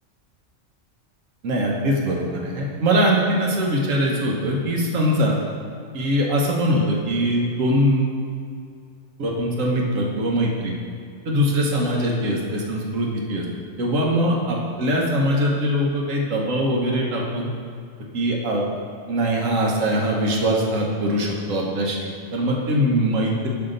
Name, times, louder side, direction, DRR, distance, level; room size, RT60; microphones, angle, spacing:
voice 1, 1.4-5.3 5.9-8.2 9.2-10.8 11.2-13.4 13.8-17.5 18.1-18.6 19.1-23.5, equal, 85° right, -1 dB, 1.4 m, -22 dB
5.8 x 5.7 x 3.9 m, 2.3 s
omnidirectional pair, 1.3 m